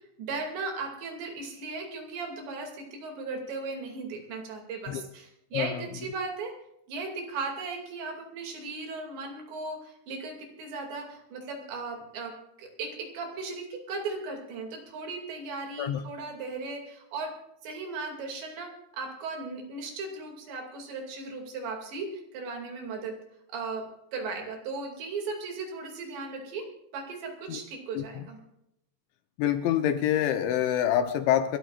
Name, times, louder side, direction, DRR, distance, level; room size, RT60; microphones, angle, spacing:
voice 1, 0.2-6.5 6.9-12.3 12.6-17.3 17.6-23.1 23.5-23.8 24.1-26.6 26.9-28.4, right 3 dB, 65° right, 2 dB, 4.5 m, -37 dB
voice 2, 5.5-5.8 15.8-16.0 27.5-27.6 27.9-28.3 29.4-31.6, left 10 dB, 75° left, 8 dB, 2.9 m, -26 dB
28.0 x 13.0 x 2.5 m, 0.81 s
omnidirectional pair, 5.8 m